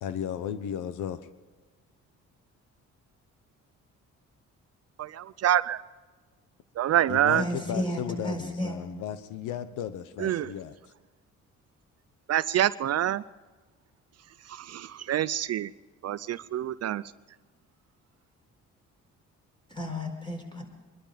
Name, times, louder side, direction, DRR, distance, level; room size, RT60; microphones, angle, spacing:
voice 1, 0.0-1.2 7.1-10.7, left 9 dB, 90° left, 12 dB, 1.0 m, -35 dB
voice 2, 5.0-5.8 6.8-7.4 10.2-10.5 12.3-13.2 14.5-15.7 16.0-17.0, right 11 dB, 55° right, 16 dB, 0.5 m, -26 dB
voice 3, 7.3-8.8 19.7-20.6, equal, 15° left, 2 dB, 4.7 m, -32 dB
24.0 x 12.0 x 5.1 m, 1.3 s
cardioid pair, 90°, 30 cm